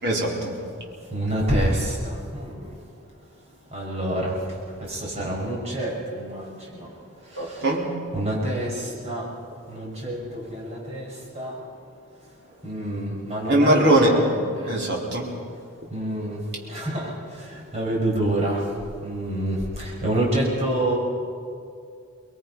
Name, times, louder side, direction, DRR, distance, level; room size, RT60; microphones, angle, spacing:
voice 1, 0.0-0.5 7.4-7.9 13.5-14.1 14.7-15.3, right 1 dB, 55° right, -2 dB, 3.9 m, -20 dB
voice 2, 1.1-2.6 3.7-4.4 4.9-6.9 8.1-9.3 9.7-11.1 11.3-11.5 12.6-14.7 15.9-16.4 16.7-17.1 17.7-18.6 19.0-21.0, right 1 dB, 30° right, -3 dB, 5.3 m, -27 dB
24.5 x 21.5 x 5.5 m, 2.4 s
head